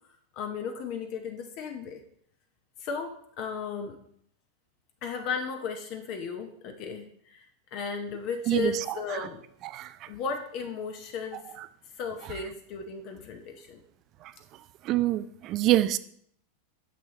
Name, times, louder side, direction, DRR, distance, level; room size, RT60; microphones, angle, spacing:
voice 1, 0.3-2.0 2.8-4.0 5.0-7.5 7.7-9.4 10.1-11.5 12.0-13.8, left 5 dB, 50° left, 5 dB, 0.7 m, -35 dB
voice 2, 14.8-16.0, right 15 dB, 45° right, 15 dB, 0.3 m, -25 dB
6.2 x 6.0 x 3.0 m, 0.65 s
hypercardioid pair, 95°, 0 cm